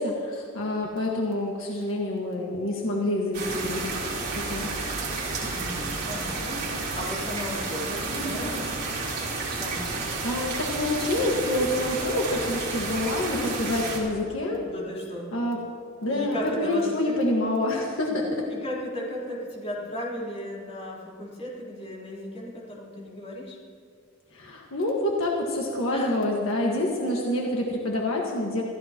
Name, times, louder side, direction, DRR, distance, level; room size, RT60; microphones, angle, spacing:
voice 1, 0.0-4.7 9.9-14.7 15.3-15.6 16.0-18.4 24.3-28.6, left 1 dB, 70° left, -1 dB, 1.7 m, -27 dB
sound 1, 3.3-14.0, right 3 dB, 50° right, 3.9 m, -31 dB
voice 2, 5.4-8.7 9.5-10.1 14.6-15.6 16.1-17.1 18.1-18.2 18.5-23.6 25.9-26.2 27.1-27.2, left 1 dB, 30° left, -6 dB, 3.9 m, -36 dB
26.5 x 15.0 x 3.0 m, 2.3 s
head